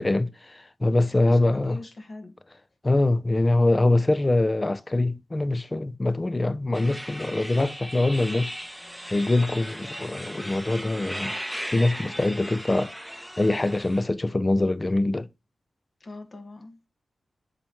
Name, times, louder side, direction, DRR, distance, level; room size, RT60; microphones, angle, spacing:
voice 1, 0.0-1.8 2.8-8.5 9.1-11.4 11.7-15.3, left 2 dB, 25° left, 0.5 m, -24 dB
voice 2, 1.0-2.3 6.7-7.0 16.0-16.9, left 2 dB, 50° left, 1.8 m, -42 dB
sound 1, 6.7-14.0, equal, ahead, 0.9 m, -37 dB
7.9 x 4.2 x 3.1 m
cardioid pair, 70°, 0 cm